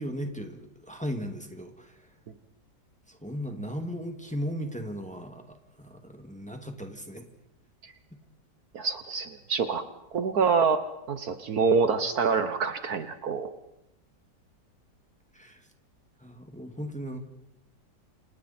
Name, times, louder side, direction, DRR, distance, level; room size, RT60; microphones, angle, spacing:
voice 1, 0.0-2.1 3.1-7.2 15.3-15.7 16.2-17.2, equal, 5° left, 4 dB, 2.1 m, -37 dB
voice 2, 8.7-9.8 10.1-10.8 11.1-13.5, right 5 dB, 60° right, 10 dB, 1.5 m, -26 dB
29.5 x 27.0 x 4.4 m, 0.85 s
omnidirectional pair, 1.9 m